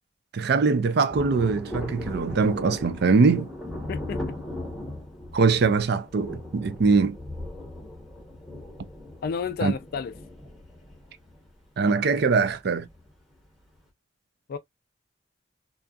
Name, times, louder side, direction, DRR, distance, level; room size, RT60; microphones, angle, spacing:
voice 1, 0.3-3.5 5.3-7.2 9.6-9.7 11.8-12.9, right 4 dB, 60° right, 0.4 m, -22 dB
Thunder, 1.1-13.1 13.4-13.5, left 1 dB, ahead, 1.0 m, -38 dB
voice 2, 3.9-4.4 9.2-10.1 14.5-14.6, left 5 dB, 55° left, 0.3 m, -31 dB
2.7 x 2.4 x 2.2 m
head